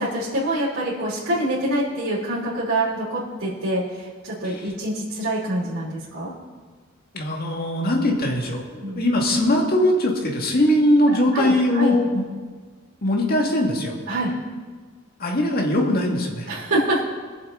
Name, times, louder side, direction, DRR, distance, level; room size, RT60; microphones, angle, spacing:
voice 1, 0.0-6.3 8.8-9.0 11.1-11.9 14.1-14.3 16.5-17.0, right 1 dB, 85° right, -9 dB, 3.0 m, -25 dB
voice 2, 7.1-12.2 13.0-14.0 15.2-16.5, left 1 dB, 50° left, 0 dB, 1.9 m, -21 dB
21.0 x 7.5 x 3.8 m, 1.5 s
head